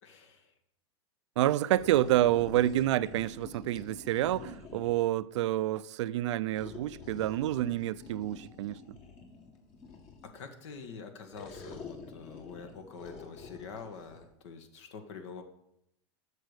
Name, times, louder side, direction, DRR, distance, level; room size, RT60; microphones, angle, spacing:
voice 1, 0.0-0.5 10.2-15.4, left 5 dB, 75° left, 1.6 m, -46 dB
voice 2, 1.4-9.0, right 14 dB, 75° right, 0.4 m, -28 dB
sound 1, 1.8-5.1 6.5-10.4 11.3-14.3, left 5 dB, 50° left, 2.1 m, -48 dB
8.2 x 6.5 x 6.5 m
hypercardioid pair, 105°, 15 cm